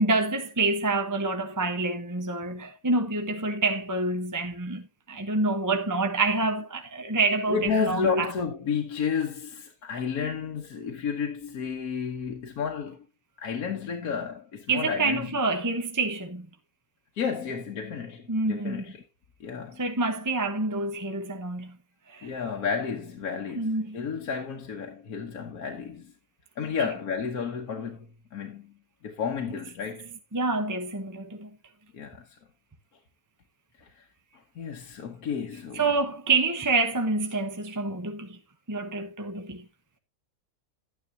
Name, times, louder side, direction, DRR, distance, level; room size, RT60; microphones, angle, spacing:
voice 1, 0.0-8.3 14.7-16.5 18.3-18.8 19.8-21.8 22.1-22.3 23.6-24.0 30.3-31.5 35.7-38.4 38.7-39.6, right 3 dB, 15° right, 0.8 m, -27 dB
voice 2, 7.5-13.0 13.4-15.4 17.1-19.0 19.4-19.8 22.2-26.1 26.6-28.7 29.0-30.1 31.9-32.2 33.8-34.0 34.5-35.9, left 6 dB, 70° left, 1.6 m, -31 dB
11.0 x 9.8 x 2.8 m
omnidirectional pair, 1.6 m